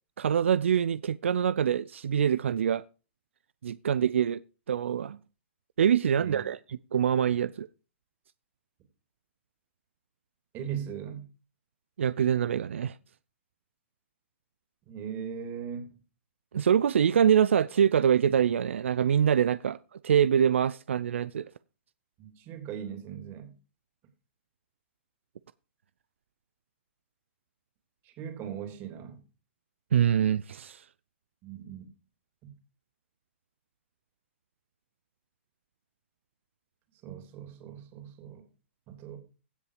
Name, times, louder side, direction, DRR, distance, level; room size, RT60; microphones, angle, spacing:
voice 1, 0.2-2.8 3.6-4.4 4.7-5.2 5.8-7.7 12.0-13.0 16.5-21.5 29.9-30.8, right 8 dB, 85° right, 0.5 m, -25 dB
voice 2, 10.5-11.2 14.9-15.9 22.2-23.5 28.0-29.2 31.4-31.9 32.4-32.5 37.0-38.4 38.9-39.2, right 8 dB, 35° right, 3.2 m, -39 dB
16.0 x 7.0 x 5.0 m
hypercardioid pair, 140°, 6 cm